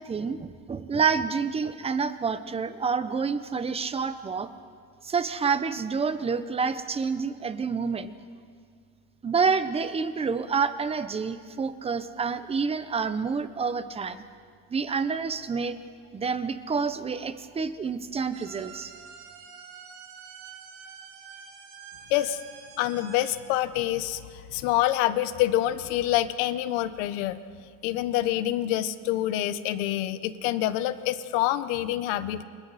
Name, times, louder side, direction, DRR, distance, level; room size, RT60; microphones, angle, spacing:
voice 1, 0.0-4.5 5.0-8.1 9.2-14.2 14.7-15.8 16.1-18.9, right 5 dB, 15° right, 11 dB, 0.9 m, -28 dB
sound 1, 18.3-23.4, right 7 dB, 80° right, 4.3 m, -46 dB
voice 2, 22.8-27.4 27.8-32.4, left 14 dB, 80° left, 12 dB, 1.3 m, -26 dB
29.0 x 28.0 x 4.3 m, 2.1 s
cardioid pair, 150°, 36 cm